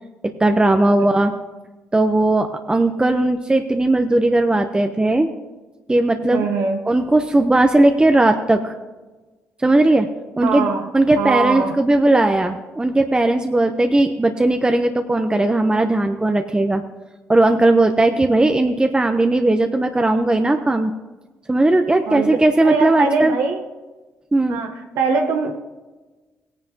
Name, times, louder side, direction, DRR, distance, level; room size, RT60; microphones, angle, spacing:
voice 1, 0.2-1.3 1.9-5.3 5.9-6.5 6.9-8.8 9.6-10.1 10.4-10.7 10.9-16.8 17.3-20.9 21.5-23.3 24.3-24.6, right 2 dB, 15° right, 6 dB, 0.7 m, -17 dB
voice 2, 6.3-6.8 10.4-10.9 11.2-11.8 22.1-23.6 24.5-25.6, right 4 dB, 85° right, 3 dB, 0.9 m, -22 dB
17.0 x 9.8 x 2.8 m, 1.2 s
supercardioid pair, 70°, 5 cm